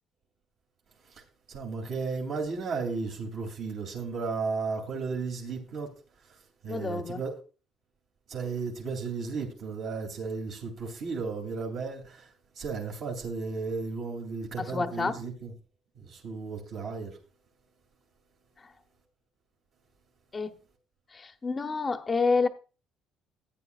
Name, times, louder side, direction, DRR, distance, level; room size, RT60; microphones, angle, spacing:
voice 1, 1.5-5.9 6.2-6.4 6.6-7.3 8.3-15.5 15.9-17.2, right 4 dB, 55° right, 2.9 m, -34 dB
voice 2, 6.7-7.2 14.6-15.2 20.3-20.5 21.1-22.5, left 4 dB, 20° left, 0.8 m, -28 dB
15.0 x 9.4 x 2.4 m
cardioid pair, 165°, 0 cm